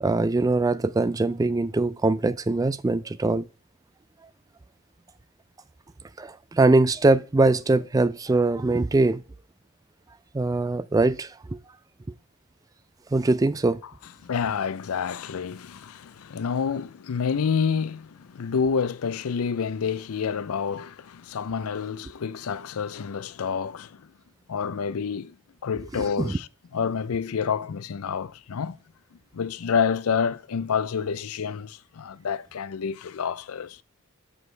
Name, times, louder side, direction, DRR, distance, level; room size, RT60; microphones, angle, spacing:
voice 1, 0.0-3.5 6.2-9.2 10.3-11.6 13.1-13.8 26.2-26.4, right 2 dB, 15° right, 0.3 m, -22 dB
voice 2, 14.2-24.1 24.5-25.4 25.6-26.5 26.7-28.8 29.3-33.8, left 6 dB, 75° left, 0.5 m, -28 dB
7.1 x 6.2 x 3.3 m
head